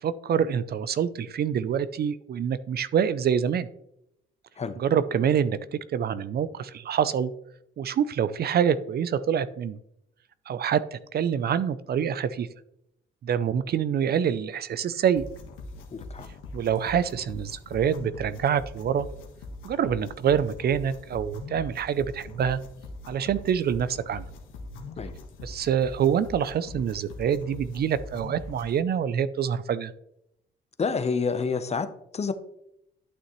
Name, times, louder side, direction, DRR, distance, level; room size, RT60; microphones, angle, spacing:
voice 1, 0.0-3.7 4.8-7.3 7.8-9.8 10.5-12.5 13.2-15.3 16.5-19.1 19.6-22.6 23.1-24.2 25.4-29.9, right 8 dB, 55° right, 15 dB, 0.5 m, -26 dB
sound 1, 15.2-28.8, left 2 dB, 90° left, 1.4 m, -42 dB
voice 2, 15.9-16.3 25.0-25.1 30.8-32.3, left 5 dB, 35° left, 11 dB, 0.8 m, -28 dB
11.5 x 6.4 x 3.1 m, 0.78 s
cardioid pair, 90°, 20 cm